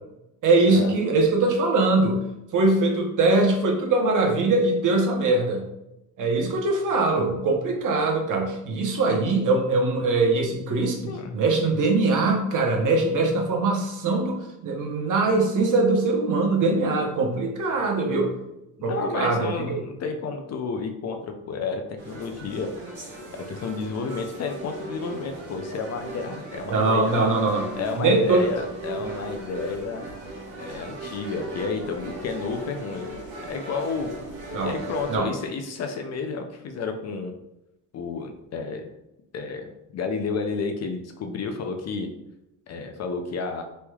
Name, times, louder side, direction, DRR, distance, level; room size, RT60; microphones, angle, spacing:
voice 1, 0.4-2.3 2.5-5.6 6.2-18.3 18.8-19.8 26.7-27.7 28.0-28.4 34.5-34.7 35.1-35.3, right 3 dB, 55° right, 1 dB, 0.8 m, -22 dB
voice 2, 18.8-22.7 23.5-27.4 27.8-30.0 30.6-33.1 33.5-34.1 34.6-37.3 37.9-38.9 39.3-42.1 42.7-43.6, left 4 dB, 45° left, 5 dB, 0.4 m, -31 dB
sound 1, 22.0-35.2, right 2 dB, 70° right, 1.4 m, -38 dB
3.2 x 2.9 x 2.3 m, 0.88 s
cardioid pair, 90°, 38 cm